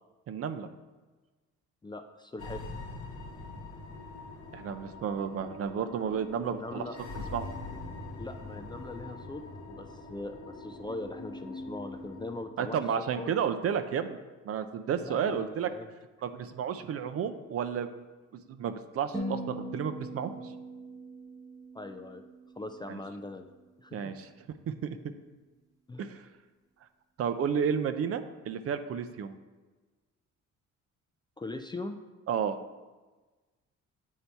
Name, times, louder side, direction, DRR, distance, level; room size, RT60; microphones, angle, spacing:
voice 1, 0.3-0.7 4.5-6.8 7.3-7.5 12.6-14.2 14.5-15.7 16.2-18.0 18.5-20.3 22.9-23.0 23.9-24.3 24.7-25.0 26.0-26.2 27.2-29.3 32.3-32.6, right 7 dB, 50° right, 9 dB, 0.4 m, -32 dB
voice 2, 1.8-2.6 6.5-7.0 8.2-12.8 13.2-13.4 15.0-15.9 21.7-22.2 22.6-23.5 23.8-24.1 25.9-26.1 31.4-32.0, left 2 dB, 15° left, 6 dB, 0.3 m, -41 dB
sound 1, 2.4-12.4, left 2 dB, 80° left, 1.0 m, -43 dB
sound 2, 19.1-23.5, right 1 dB, 10° right, 0.8 m, -41 dB
8.1 x 2.8 x 4.4 m, 1.3 s
cardioid pair, 90°, 30 cm